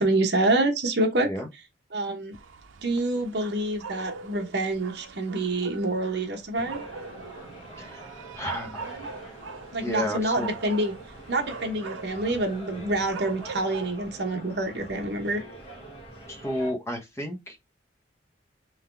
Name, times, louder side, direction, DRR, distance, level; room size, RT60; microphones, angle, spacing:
voice 1, 0.0-1.3 1.9-2.3 2.8-6.8 8.9-9.1 9.7-10.9 11.3-15.4, right 2 dB, 60° right, 1.0 m, -27 dB
sound 1, 2.3-14.0, right 5 dB, 90° right, 0.6 m, -42 dB
restaurantr PR, 6.5-16.7, right 1 dB, 30° left, 1.7 m, -45 dB
voice 2, 8.3-9.0 9.8-10.5 16.3-17.6, left 1 dB, 15° left, 0.9 m, -32 dB
3.8 x 3.0 x 3.3 m
head